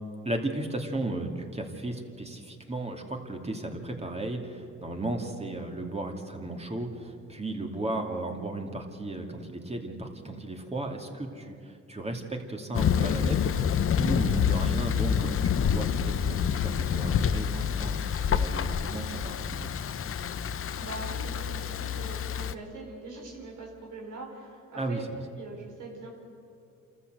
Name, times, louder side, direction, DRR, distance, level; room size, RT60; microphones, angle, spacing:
voice 1, 0.2-19.7 24.8-25.0, right 2 dB, 20° right, 2 dB, 2.6 m, -35 dB
Thunder, 12.7-22.5, left 7 dB, 45° left, 0.8 m, -27 dB
voice 2, 20.8-25.0 25.3-26.1, right 3 dB, 80° right, -2 dB, 4.6 m, -42 dB
28.0 x 14.0 x 7.9 m, 2.5 s
cardioid pair, 90°, 30 cm